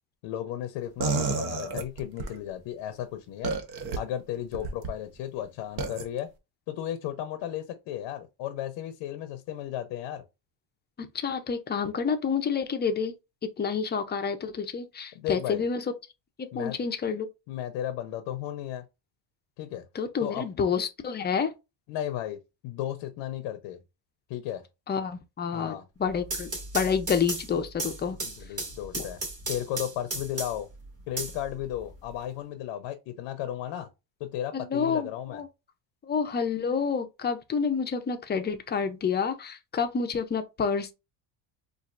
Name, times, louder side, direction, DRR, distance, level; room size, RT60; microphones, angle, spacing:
voice 1, 0.2-3.5 4.0-6.3 6.7-10.2 15.1-15.6 16.5-16.8 17.5-18.9 19.6-19.8 20.2-20.6 21.9-22.4 22.6-23.8 24.3-24.6 25.5-25.9 28.2-29.2 29.5-30.7 31.1-33.9 34.2-35.4, left 11 dB, 70° left, 0.7 m, -34 dB
sound 1, 1.0-2.3 3.4-4.0 4.5-4.9 5.8-6.0, right 4 dB, 50° right, 0.9 m, -30 dB
voice 2, 11.0-13.1 13.6-15.8 16.4-17.3 19.9-21.5 24.9-28.2 28.9-29.0 34.5-35.5 36.0-40.9, left 6 dB, 20° left, 0.5 m, -29 dB
sound 2, 26.1-30.7 31.2-32.1, right 2 dB, 30° right, 2.0 m, -35 dB
4.3 x 2.5 x 2.4 m
cardioid pair, 120°, 47 cm